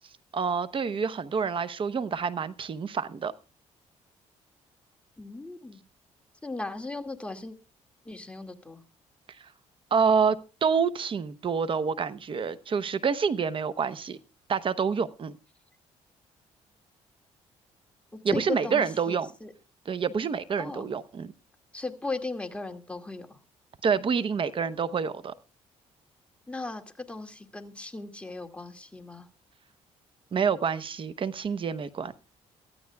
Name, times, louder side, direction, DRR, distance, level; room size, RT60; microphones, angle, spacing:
voice 1, 0.3-3.3 9.9-14.2 14.5-15.4 18.2-19.3 19.9-21.3 23.8-25.3 30.3-32.1, right 6 dB, 45° right, 14 dB, 0.9 m, -27 dB
voice 2, 5.2-5.8 6.4-7.5 8.1-8.8 18.1-19.1 19.4-19.5 20.6-20.9 21.7-23.3 26.5-26.8 27.1-29.3, left 3 dB, 10° left, 4 dB, 2.2 m, -37 dB
23.0 x 14.0 x 2.3 m, 0.33 s
cardioid pair, 85°, 12 cm